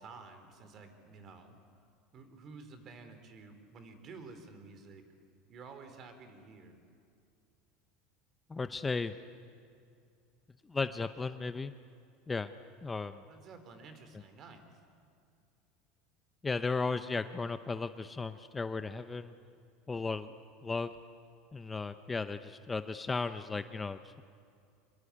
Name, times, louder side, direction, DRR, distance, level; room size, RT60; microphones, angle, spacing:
voice 1, 0.0-1.6 2.1-5.0 5.5-6.8 13.3-14.7, right 4 dB, 40° right, 8 dB, 3.7 m, -51 dB
voice 2, 8.5-9.1 10.7-11.7 12.3-12.5 12.8-13.2 16.4-19.3 19.9-20.3 20.6-20.9 21.5-24.2, left 4 dB, 15° left, 11 dB, 0.7 m, -35 dB
25.0 x 22.0 x 9.7 m, 2.4 s
supercardioid pair, 125°, 0 cm